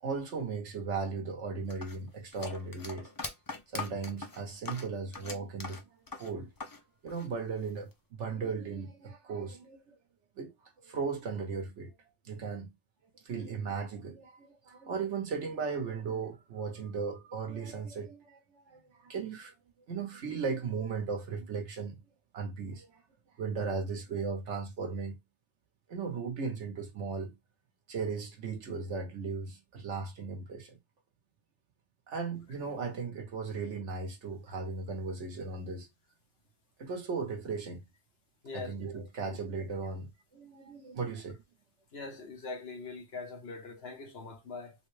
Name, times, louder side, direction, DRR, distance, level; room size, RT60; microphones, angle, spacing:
voice 1, 0.0-3.1 3.7-5.8 6.2-6.5 7.0-9.9 10.4-10.5 10.8-11.9 12.2-12.7 13.2-19.5 19.9-22.0 22.3-23.0 23.4-25.2 25.9-27.3 27.9-30.8 32.1-35.9 36.8-37.8 38.5-41.4, right 5 dB, 80° right, 1.3 m, -37 dB
sound 1, 1.7-6.8 7.1-7.9, left 3 dB, 30° left, 0.4 m, -42 dB
voice 2, 41.9-44.8, left 4 dB, 60° left, 1.2 m, -42 dB
3.6 x 2.2 x 3.1 m
omnidirectional pair, 1.2 m